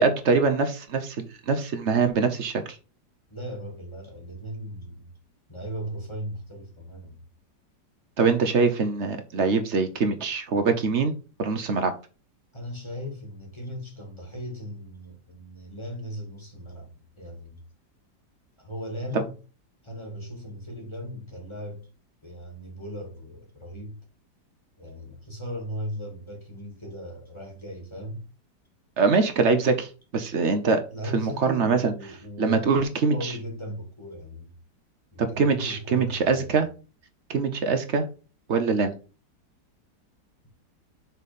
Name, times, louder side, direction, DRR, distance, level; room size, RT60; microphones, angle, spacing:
voice 1, 0.0-2.8 8.2-11.1 11.4-11.9 29.0-30.8 31.1-31.9 32.4-33.3 35.2-36.7 37.3-38.0 38.5-38.9, right 4 dB, 50° right, 1.0 m, -23 dB
voice 2, 3.3-5.1 5.5-7.2 12.5-16.9 17.2-17.6 18.6-19.3 19.8-21.9 22.2-24.0 24.8-28.2 30.9-32.8 33.1-34.5 35.1-36.6, equal, 15° left, 2.4 m, -37 dB
6.4 x 4.1 x 5.2 m
omnidirectional pair, 1.8 m